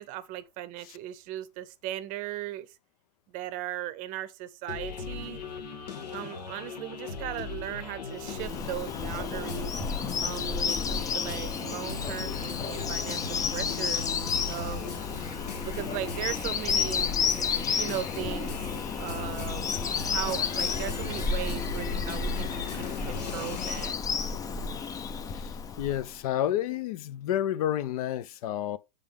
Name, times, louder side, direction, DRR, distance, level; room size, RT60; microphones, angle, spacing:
voice 1, 0.0-2.7 3.3-5.4 6.1-9.7 10.2-14.1 14.5-15.0 15.6-17.1 17.7-18.7 19.0-19.7 20.0-24.0, right 13 dB, 40° right, 0.7 m, -37 dB
sound 1, 4.7-23.9, left 5 dB, 80° left, 1.7 m, -38 dB
Bird vocalization bird call bird song, 8.2-26.2, left 6 dB, 15° left, 0.5 m, -32 dB
voice 2, 25.3-28.8, left 11 dB, 60° left, 0.6 m, -30 dB
8.1 x 3.7 x 3.5 m
hypercardioid pair, 120°, 21 cm